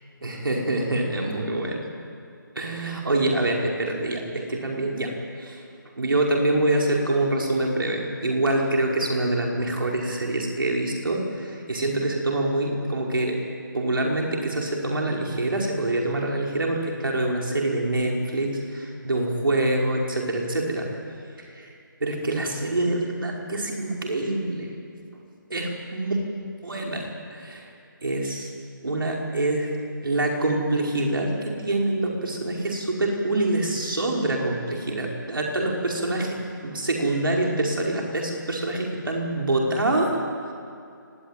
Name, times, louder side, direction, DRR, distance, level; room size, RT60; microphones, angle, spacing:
voice 1, 0.2-1.9 2.5-5.6 6.0-13.4 13.7-20.9 21.4-21.7 22.0-24.7 25.1-25.2 25.5-26.2 26.6-27.7 28.0-28.5 28.8-40.1 40.4-40.5, right 2 dB, 80° right, -1 dB, 5.2 m, -25 dB
24.0 x 20.0 x 9.2 m, 2.4 s
hypercardioid pair, 180°, 11 cm